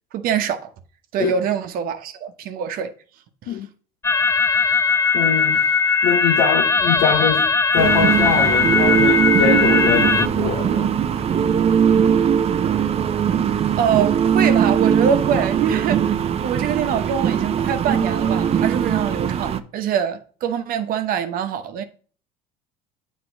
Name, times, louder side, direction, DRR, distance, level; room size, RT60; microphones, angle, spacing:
voice 1, 0.1-0.7 1.1-2.9 3.4-3.6 13.8-16.0 16.4-21.8, right 8 dB, 60° right, 1.0 m, -24 dB
sound 1, 4.0-10.3, left 5 dB, 15° left, 0.4 m, -19 dB
voice 2, 5.1-5.6 6.0-7.5 7.7-10.9, left 7 dB, 70° left, 0.8 m, -23 dB
sound 2, 7.8-19.6, right 8 dB, 40° right, 0.6 m, -20 dB
7.8 x 3.7 x 6.2 m
supercardioid pair, 85°, 17 cm